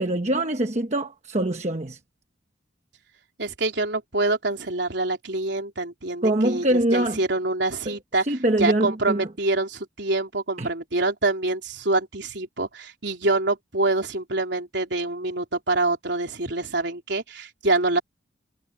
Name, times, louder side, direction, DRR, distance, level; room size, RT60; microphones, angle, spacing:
voice 1, 0.0-2.0 6.2-7.2 7.9-8.0 8.3-9.3 10.6-10.7, right 1 dB, 35° right, 1.1 m, -23 dB
voice 2, 3.4-18.0, right 2 dB, 70° right, 3.7 m, -26 dB
head